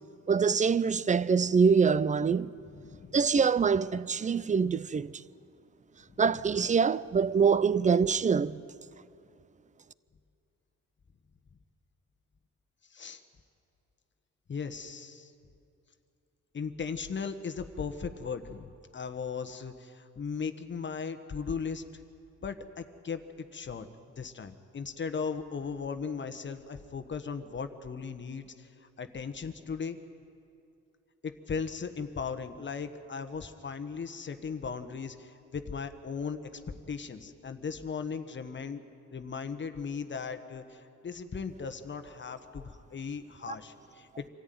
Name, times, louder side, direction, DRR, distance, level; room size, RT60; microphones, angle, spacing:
voice 1, 0.3-2.5 3.1-5.2 6.2-8.6 43.5-43.6, right 6 dB, 25° right, 0.6 m, -25 dB
voice 2, 2.7-3.2 6.1-6.4 12.9-13.2 14.5-15.3 16.5-21.8 22.4-23.2 23.5-23.9 24.2-30.0 31.2-36.6 36.9-38.8 39.1-44.3, left 5 dB, 40° left, 1.3 m, -37 dB
25.5 x 13.5 x 9.4 m
cardioid pair, 90°, 30 cm